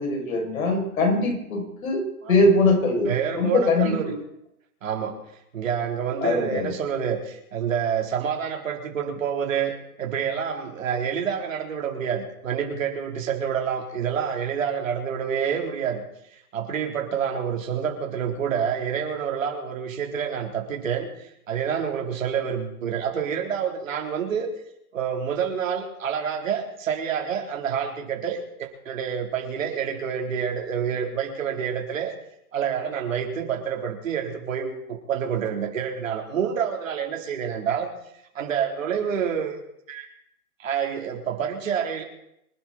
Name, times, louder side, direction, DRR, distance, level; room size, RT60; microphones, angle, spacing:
voice 1, 0.0-2.0 2.3-4.1 6.2-6.7, left 2 dB, 65° left, 0 dB, 7.7 m, -22 dB
voice 2, 3.1-4.1 4.8-5.2 5.5-16.0 16.5-24.5 24.9-32.1 32.5-37.9 38.3-39.6 39.9-40.1 40.6-42.0, right 7 dB, 60° right, 2 dB, 4.2 m, -28 dB
25.5 x 11.5 x 4.5 m, 0.78 s
hypercardioid pair, 150°, 45 cm